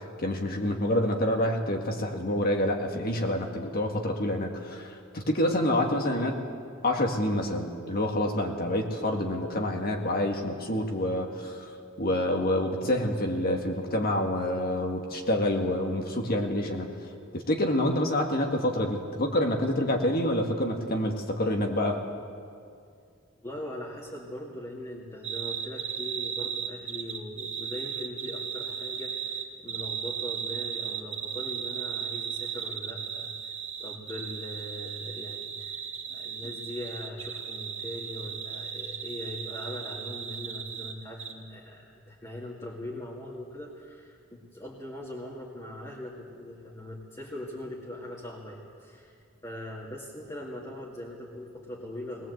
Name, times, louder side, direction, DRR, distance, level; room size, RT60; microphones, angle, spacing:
voice 1, 0.2-6.4 6.8-11.7 12.0-16.9 17.3-22.0, left 1 dB, 50° left, 2 dB, 1.9 m, -27 dB
voice 2, 23.4-33.3 33.8-49.1 49.4-52.3, left 1 dB, 20° left, -4 dB, 2.3 m, -41 dB
sound 1, 25.2-40.9 41.2-41.3, right 7 dB, 35° right, 2.0 m, -36 dB
20.5 x 20.0 x 8.0 m, 2.3 s
head